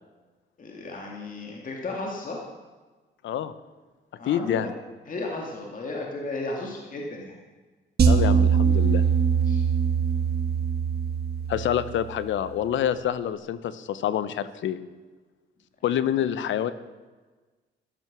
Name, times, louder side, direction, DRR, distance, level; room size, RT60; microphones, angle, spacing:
voice 1, 0.6-2.4 4.2-4.7 5.1-7.4 9.4-9.7 16.2-16.3, left 2 dB, 40° left, -1 dB, 2.3 m, -34 dB
voice 2, 4.3-4.7 8.1-9.0 11.5-14.8 15.8-16.7, left 10 dB, 70° left, 14 dB, 0.9 m, -27 dB
sound 1, 8.0-12.3, right 6 dB, 55° right, 1.7 m, -22 dB
12.5 x 12.5 x 6.2 m, 1.3 s
cardioid pair, 90°, 20 cm